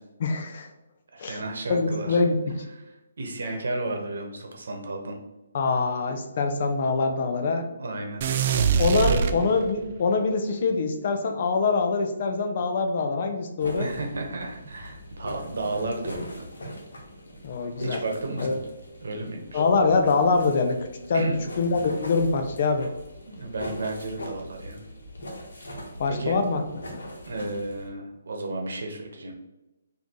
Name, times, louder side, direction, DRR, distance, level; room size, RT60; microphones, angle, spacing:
voice 1, 0.2-0.7 1.2-1.4 1.7-2.6 5.5-7.7 8.8-13.9 17.4-18.0 18.4-18.5 19.5-20.8 21.1-21.3 21.6-22.9 26.0-26.6 26.9-27.0, left 4 dB, 50° left, 5 dB, 0.6 m, -24 dB
voice 2, 1.1-2.2 2.7-2.9 3.2-5.2 7.7-8.2 8.5-9.5 13.7-16.4 17.8-18.6 19.0-19.6 21.1-21.4 23.2-24.8 25.7-26.4 27.3-29.3, right 2 dB, 70° right, 3 dB, 0.9 m, -33 dB
sound 1, 8.2-10.0, right 7 dB, 45° right, 0.3 m, -24 dB
sound 2, 13.6-27.9, equal, 80° left, 1.2 m, -41 dB
4.0 x 2.8 x 3.0 m, 1.0 s
hypercardioid pair, 150°, 0 cm